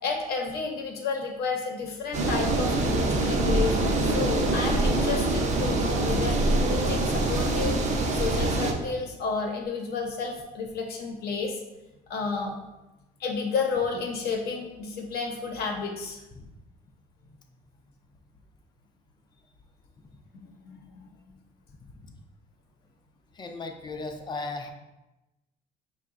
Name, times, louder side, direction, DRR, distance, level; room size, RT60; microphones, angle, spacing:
voice 1, 0.0-6.4 6.7-7.8 8.1-11.5 12.1-12.6 13.2-16.2 20.6-21.1, left 4 dB, 70° left, 2 dB, 0.8 m, -31 dB
sound 1, 2.1-8.7, right 2 dB, 45° right, 0.7 m, -24 dB
voice 2, 23.3-24.7, left 3 dB, 25° left, 5 dB, 0.5 m, -36 dB
4.8 x 2.2 x 3.7 m, 1.0 s
cardioid pair, 110°, 17 cm